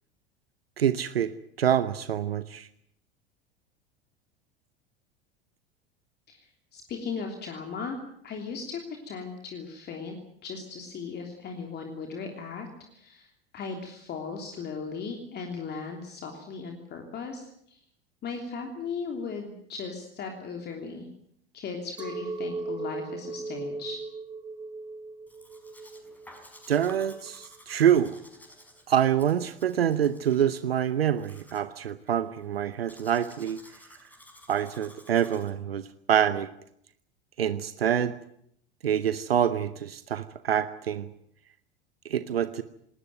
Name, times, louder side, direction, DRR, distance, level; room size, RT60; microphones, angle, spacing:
voice 1, 0.8-1.3 1.6-2.7 26.7-28.2 28.9-33.6 34.5-36.5 37.4-38.1 38.8-41.1 42.0-42.6, right 9 dB, 75° right, 14 dB, 0.9 m, -26 dB
voice 2, 6.3-8.0 8.2-10.1 10.4-12.7 12.9-17.8 18.2-21.1 21.5-24.0, left 5 dB, 35° left, 3 dB, 3.2 m, -37 dB
Chink clink, 22.0-27.5, right 3 dB, 15° right, 1.5 m, -38 dB
Domestic sounds home sounds, 25.3-35.5, left 1 dB, 5° left, 5.6 m, -54 dB
20.0 x 19.5 x 9.4 m, 0.71 s
figure-of-eight pair, 80°, 31 cm